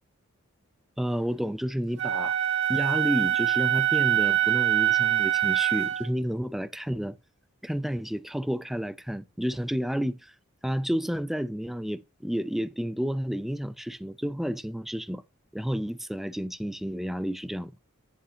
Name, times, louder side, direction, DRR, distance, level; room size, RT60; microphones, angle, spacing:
voice 1, 1.0-2.4 2.7-7.2 7.6-10.3 10.6-15.2 15.5-17.7, equal, ahead, 0.4 m, -30 dB
Wind instrument woodwind instrument, 2.0-6.1, right 12 dB, 55° right, 1.6 m, -24 dB
11.0 x 7.2 x 2.8 m
head